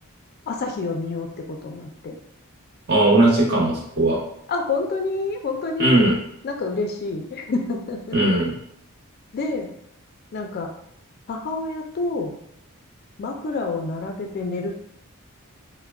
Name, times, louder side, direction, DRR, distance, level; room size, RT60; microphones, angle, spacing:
voice 1, 0.5-2.2 4.5-6.1 6.4-8.2 9.3-9.7 10.3-10.7 11.3-12.4 13.2-14.7, left 3 dB, 45° left, 3 dB, 0.4 m, -28 dB
voice 2, 2.9-4.2 5.8-6.2 8.1-8.6, right 2 dB, 50° right, -3 dB, 0.9 m, -18 dB
3.5 x 2.1 x 2.2 m, 0.72 s
head